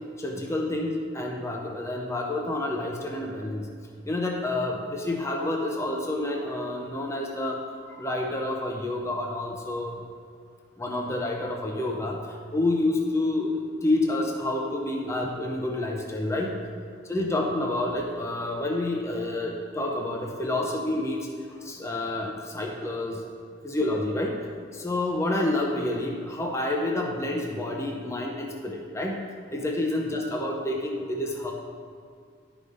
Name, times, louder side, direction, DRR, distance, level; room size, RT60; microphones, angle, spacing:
voice 1, 0.2-3.7 4.0-10.0 10.8-12.2 12.5-16.5 17.1-21.3 21.6-23.2 23.6-24.4 24.7-29.2 29.5-31.5, left 2 dB, 15° left, 0 dB, 0.7 m, -28 dB
10.5 x 5.0 x 5.4 m, 2.2 s
head